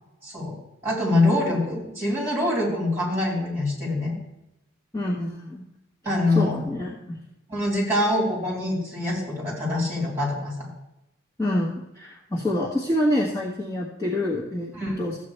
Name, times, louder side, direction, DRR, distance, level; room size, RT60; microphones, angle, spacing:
voice 1, 0.2-0.6 0.8-4.1 6.0-6.6 7.5-10.7 14.7-15.0, left 1 dB, 10° right, -5 dB, 4.2 m, -24 dB
voice 2, 4.9-5.6 6.3-7.2 11.4-14.7 15.0-15.2, left 1 dB, 15° left, -7 dB, 1.5 m, -26 dB
14.0 x 8.6 x 3.3 m, 0.89 s
head